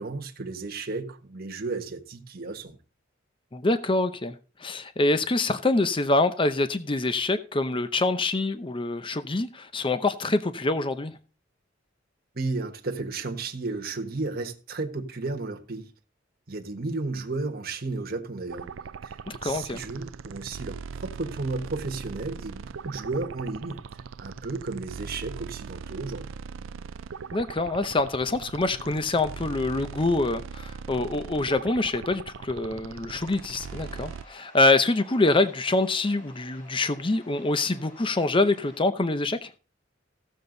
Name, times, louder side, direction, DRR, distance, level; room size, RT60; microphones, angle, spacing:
voice 1, 0.0-2.8 12.3-15.9 16.5-18.7 19.0-23.9 24.2-26.3, right 3 dB, 50° right, 1.4 m, -33 dB
voice 2, 3.5-4.3 4.6-11.1 19.3-19.8 27.3-39.5, left 2 dB, 25° left, 0.7 m, -25 dB
sound 1, 18.5-34.2, right 5 dB, 85° right, 0.5 m, -40 dB
sound 2, 33.1-38.8, left 1 dB, 45° left, 5.2 m, -52 dB
15.5 x 7.1 x 3.9 m
head